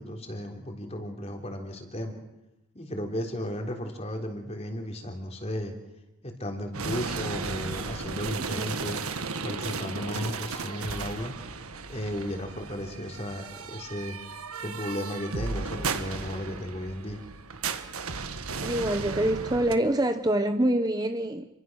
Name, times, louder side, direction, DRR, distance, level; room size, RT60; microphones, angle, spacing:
voice 1, 0.0-2.2 2.7-5.8 6.2-11.3 11.9-14.2 14.6-17.2, equal, 30° left, 3 dB, 3.6 m, -35 dB
sound 1, 6.7-19.7, right 4 dB, 85° right, 1.6 m, -35 dB
voice 2, 18.6-21.5, right 1 dB, 20° right, 8 dB, 0.9 m, -25 dB
29.0 x 23.5 x 6.4 m, 0.93 s
head